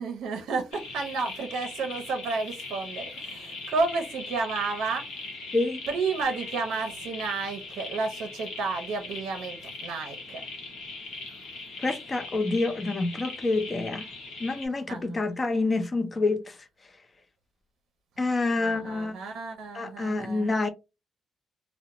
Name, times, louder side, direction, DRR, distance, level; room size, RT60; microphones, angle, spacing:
voice 1, 0.0-5.0 5.9-10.4 14.9-15.3 15.6-15.7 18.6-20.7, right 4 dB, 80° right, 0.5 m, -31 dB
sound 1, 0.7-14.7, left 3 dB, 85° left, 0.8 m, -40 dB
voice 2, 11.8-14.1 14.4-16.4 18.2-19.2 19.7-20.7, left 3 dB, 30° left, 0.5 m, -27 dB
2.4 x 2.0 x 2.9 m
cardioid pair, 90°, 0 cm